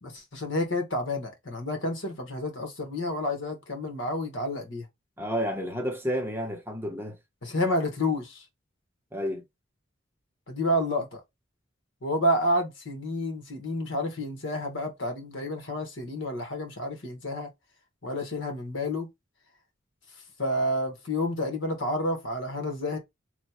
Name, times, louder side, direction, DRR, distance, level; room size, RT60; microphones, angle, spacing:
voice 1, 0.0-4.8 7.4-8.4 10.5-11.2 12.0-17.5 18.0-19.1 20.4-23.0, left 1 dB, 80° left, 1.3 m, -29 dB
voice 2, 5.2-7.2 9.1-9.4, equal, 10° right, 0.8 m, -30 dB
3.2 x 2.2 x 4.2 m
head